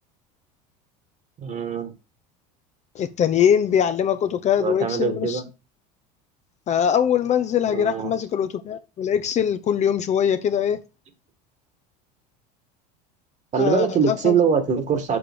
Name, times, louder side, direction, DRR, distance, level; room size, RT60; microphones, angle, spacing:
voice 1, 1.4-1.9 4.6-5.4 7.7-8.2 13.5-15.2, right 6 dB, 35° right, 1.9 m, -23 dB
voice 2, 2.9-5.4 6.7-10.8 13.6-14.4, left 8 dB, 35° left, 0.7 m, -22 dB
6.9 x 6.6 x 3.7 m
supercardioid pair, 110°, 20 cm